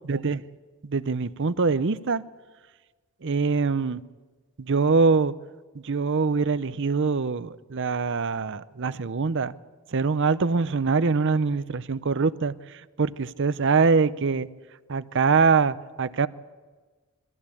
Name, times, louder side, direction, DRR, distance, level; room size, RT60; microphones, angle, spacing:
voice 1, 0.1-0.4 0.8-2.2 3.2-4.0 4.6-5.3 5.7-9.5 9.9-12.5 13.0-14.5 14.9-16.3, right 4 dB, 55° right, 15 dB, 0.7 m, -23 dB
23.5 x 15.0 x 8.5 m, 1.4 s
head